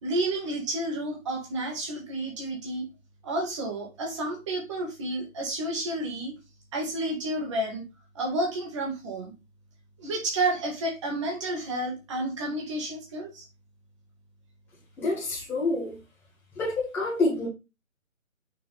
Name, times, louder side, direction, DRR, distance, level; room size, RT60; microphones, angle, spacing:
voice 1, 0.0-2.8 3.2-6.3 6.7-7.8 8.2-9.3 10.0-13.5, right 1 dB, 20° right, 2.0 m, -30 dB
voice 2, 15.0-16.0 16.6-17.5, left 2 dB, 5° left, 1.8 m, -27 dB
6.1 x 4.9 x 3.4 m
figure-of-eight pair, 150°, 41 cm